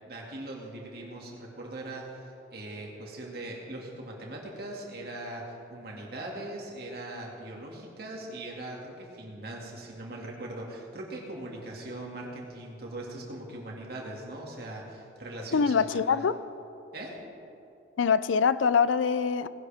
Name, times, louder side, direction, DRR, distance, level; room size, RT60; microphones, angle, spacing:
voice 1, 0.0-16.2 16.9-17.2, right 1 dB, 55° right, 2.3 m, -40 dB
voice 2, 15.5-16.4 18.0-19.5, left 6 dB, 85° left, 0.4 m, -24 dB
19.0 x 10.5 x 3.5 m
head